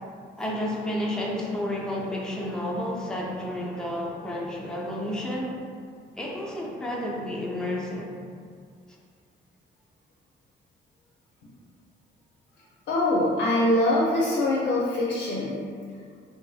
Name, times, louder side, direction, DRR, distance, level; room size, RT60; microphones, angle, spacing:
voice 1, 0.4-5.6 6.2-8.1, left 1 dB, 5° left, -3 dB, 0.4 m, -31 dB
voice 2, 12.9-15.6, left 1 dB, 65° left, -5 dB, 0.5 m, -23 dB
2.5 x 2.4 x 2.3 m, 2.1 s
cardioid pair, 90°, 20 cm